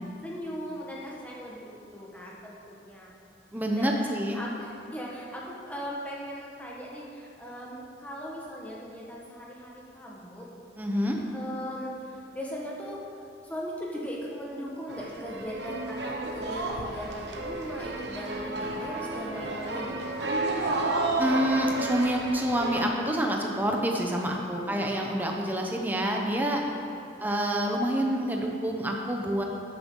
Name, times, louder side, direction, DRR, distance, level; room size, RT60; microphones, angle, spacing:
voice 1, 0.2-3.1 3.7-10.5 11.3-13.0 13.4-21.0 24.5-25.0 26.9-27.3, equal, 10° left, -4 dB, 1.4 m, -39 dB
voice 2, 3.5-4.4 10.8-11.2 21.2-26.6 27.2-29.4, equal, 10° right, 0 dB, 0.9 m, -27 dB
sound 1, 14.9-22.8, right 2 dB, 65° right, 1.1 m, -31 dB
12.0 x 9.4 x 3.9 m, 2.6 s
head